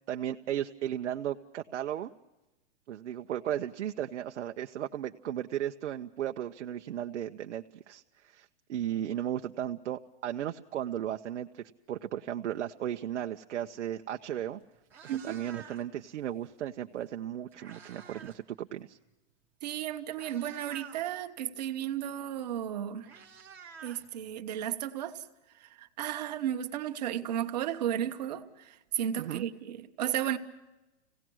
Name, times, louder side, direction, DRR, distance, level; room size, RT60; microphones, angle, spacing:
voice 1, 0.1-2.1 2.9-14.6 15.2-19.0 29.2-29.4, right 11 dB, 85° right, 0.8 m, -35 dB
Meow, 14.3-14.4 14.7-16.0 17.1-18.4 18.7-19.0 19.7-19.8 20.1-21.0 22.4-22.5 22.7-24.6, right 6 dB, 5° right, 0.8 m, -50 dB
voice 2, 15.1-15.4 19.6-23.1 23.8-25.2 25.6-30.4, right 10 dB, 35° right, 1.1 m, -34 dB
26.5 x 17.5 x 6.2 m
hypercardioid pair, 180°, 35 cm